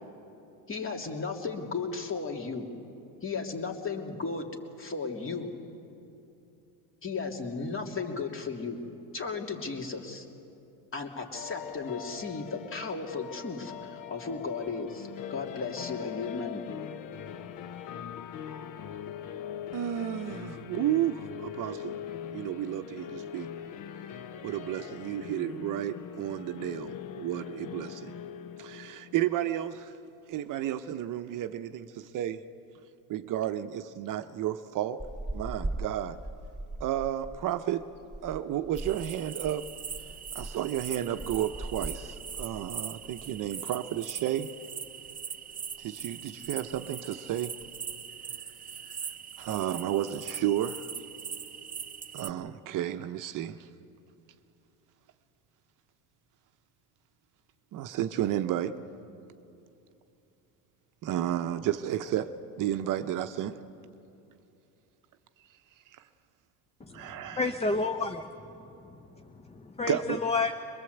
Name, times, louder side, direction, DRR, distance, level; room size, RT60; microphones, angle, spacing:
voice 1, 0.7-2.7 3.2-4.5 4.8-5.5 7.0-8.8 9.1-10.3 10.9-16.7, left 4 dB, 30° left, 2 dB, 2.7 m, -35 dB
sound 1, 11.3-29.4, left 9 dB, 50° left, 1.1 m, -42 dB
voice 2, 19.7-21.9 22.3-23.5 24.4-28.1 28.6-29.9 30.3-32.4 33.1-35.0 35.3-36.2 36.8-37.9 38.2-39.6 40.3-44.5 45.8-47.6 49.4-50.8 52.1-53.6 57.7-58.8 61.0-63.6 66.9-67.4 69.9-70.2, right 12 dB, 50° right, 10 dB, 0.8 m, -32 dB
sound 2, 35.0-43.5 43.8-44.0 44.4-45.2 45.5-45.9 46.2-46.3 46.4-46.9 47.4-47.9, right 2 dB, ahead, 2.9 m, -41 dB
sound 3, 38.8-52.3, right 7 dB, 20° right, 0.7 m, -41 dB
voice 3, 66.8-68.5 68.8-70.5, left 3 dB, 15° left, 7 dB, 0.8 m, -31 dB
22.5 x 22.0 x 8.0 m, 2.8 s
supercardioid pair, 110°, 41 cm